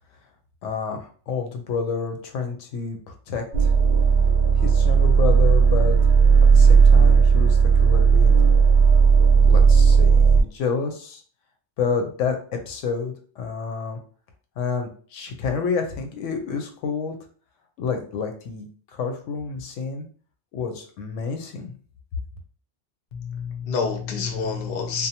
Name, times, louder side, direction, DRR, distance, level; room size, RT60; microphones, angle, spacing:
voice 1, 0.6-3.7 4.6-6.0 6.4-8.3 9.4-11.2 11.8-14.0 14.6-17.1 17.8-18.6 18.9-20.1 20.5-21.7, left 5 dB, 85° left, 5 dB, 0.9 m, -29 dB
sound 1, 3.5-10.4, right 5 dB, 80° right, 0.9 m, -15 dB
voice 2, 23.1-25.1, left 5 dB, 60° left, 3 dB, 0.7 m, -28 dB
2.6 x 2.1 x 2.7 m, 0.42 s
omnidirectional pair, 1.2 m